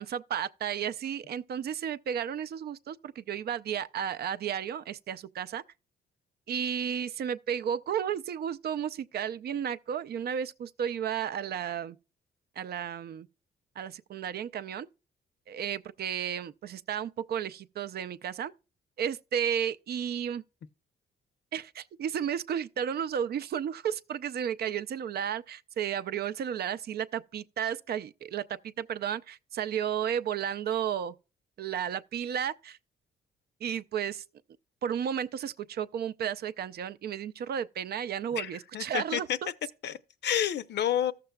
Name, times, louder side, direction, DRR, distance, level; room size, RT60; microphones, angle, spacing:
voice 1, 0.0-5.6 6.5-12.0 12.6-13.3 13.8-14.9 15.5-18.5 19.0-20.4 21.5-31.1 31.6-32.8 33.6-34.2 34.8-39.3, right 8 dB, 60° right, 0.5 m, -33 dB
voice 2, 38.4-39.4 39.8-41.1, left 10 dB, 70° left, 0.6 m, -30 dB
14.5 x 6.7 x 2.2 m
cardioid pair, 95°, 19 cm